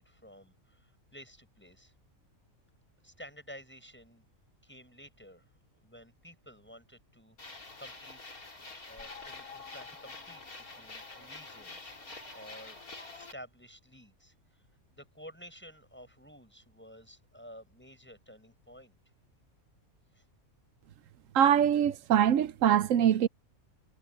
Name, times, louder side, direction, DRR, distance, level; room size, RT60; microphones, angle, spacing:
voice 1, 0.0-1.9 3.0-4.3 4.6-5.5 5.8-8.4 8.9-10.4 10.8-12.0 12.3-14.6 14.9-19.0 20.1-20.2, equal, 5° left, 7.4 m, -52 dB
sound 1, 7.4-13.3, left 3 dB, 85° left, 4.3 m, -46 dB
voice 2, 21.3-23.3, right 9 dB, 70° right, 1.0 m, -23 dB
omnidirectional pair, 1.5 m